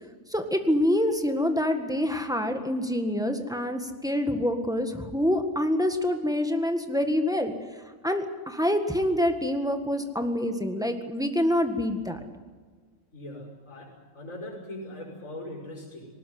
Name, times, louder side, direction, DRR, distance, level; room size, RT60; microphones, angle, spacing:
voice 1, 0.3-7.5 8.0-12.2, left 1 dB, 5° right, 6 dB, 1.6 m, -26 dB
voice 2, 13.1-16.1, left 1 dB, 70° left, -2 dB, 6.2 m, -40 dB
19.5 x 19.0 x 9.5 m, 1.5 s
omnidirectional pair, 1.4 m